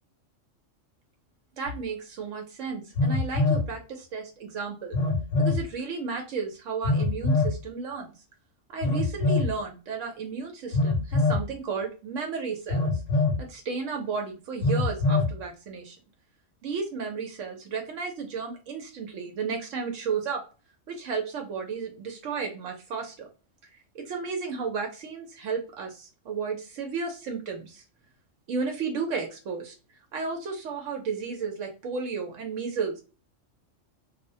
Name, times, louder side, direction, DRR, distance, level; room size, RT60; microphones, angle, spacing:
voice 1, 1.6-5.0 5.4-8.1 8.7-12.8 13.4-16.0 16.6-20.4 20.9-23.3 23.9-27.8 28.5-29.7 30.1-33.0, right 5 dB, 80° right, 3 dB, 1.0 m, -33 dB
Telephone, 1.7-1.8 2.9-3.7 4.9-5.6 6.8-7.6 8.8-9.5 10.7-11.5 12.7-13.4 14.6-15.3, left 3 dB, 50° left, 0.7 m, -24 dB
2.3 x 2.1 x 2.6 m, 0.34 s
omnidirectional pair, 1.3 m